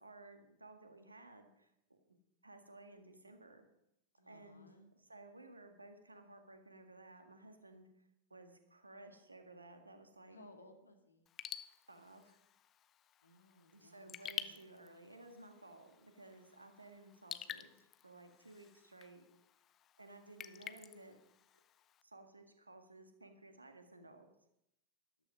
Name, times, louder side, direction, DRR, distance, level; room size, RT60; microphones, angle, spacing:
voice 1, 0.0-2.2 2.4-3.7 4.3-4.7 4.9-7.9 8.3-10.4 11.9-12.4 13.7-19.2 20.0-21.2 22.0-24.3, right 2 dB, 80° right, 6 dB, 1.7 m, -57 dB
voice 2, 4.2-4.9 10.3-11.3 13.2-14.6, left 1 dB, 80° left, 5 dB, 2.0 m, -61 dB
Raindrop / Drip, 11.3-22.0, left 10 dB, 30° left, 0.6 m, -51 dB
13.0 x 12.5 x 5.1 m, 0.81 s
figure-of-eight pair, 90°, 0 cm